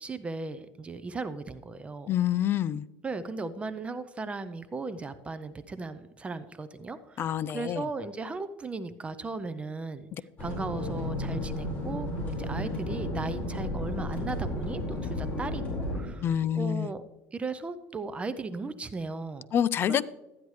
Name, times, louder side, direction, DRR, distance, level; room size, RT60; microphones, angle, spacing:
voice 1, 0.0-2.1 3.0-10.1 10.4-16.3 16.6-17.0 17.3-19.5 19.9-20.0, right 3 dB, 20° right, 13 dB, 0.5 m, -37 dB
voice 2, 2.1-2.9 7.2-7.9 16.2-16.9 19.5-20.0, left 10 dB, 40° left, 17 dB, 0.4 m, -27 dB
sound 1, 10.4-16.0, left 1 dB, 20° left, 4.4 m, -33 dB
13.0 x 9.4 x 3.2 m, 0.99 s
cardioid pair, 125°, 6 cm